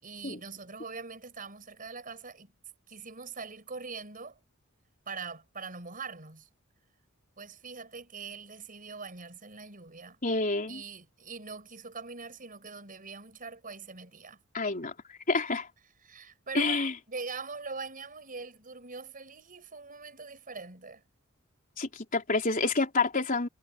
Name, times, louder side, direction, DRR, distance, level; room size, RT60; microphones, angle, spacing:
voice 1, 0.0-2.5 2.9-4.4 5.1-6.5 7.4-10.2 10.7-14.4 16.0-21.0, right 4 dB, 40° right, 6.1 m, -42 dB
voice 2, 10.2-10.8 14.5-14.9 15.3-15.7 16.5-16.9 21.8-23.5, left 3 dB, 40° left, 3.8 m, -28 dB
head